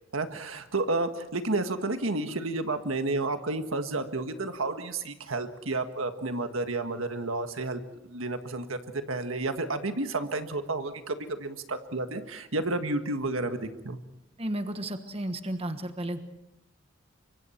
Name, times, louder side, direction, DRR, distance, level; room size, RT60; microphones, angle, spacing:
voice 1, 0.1-8.8 9.1-14.0, right 2 dB, 85° right, 7 dB, 1.7 m, -31 dB
voice 2, 14.4-16.2, right 1 dB, 30° right, 8 dB, 1.3 m, -33 dB
28.0 x 24.5 x 4.5 m, 0.90 s
head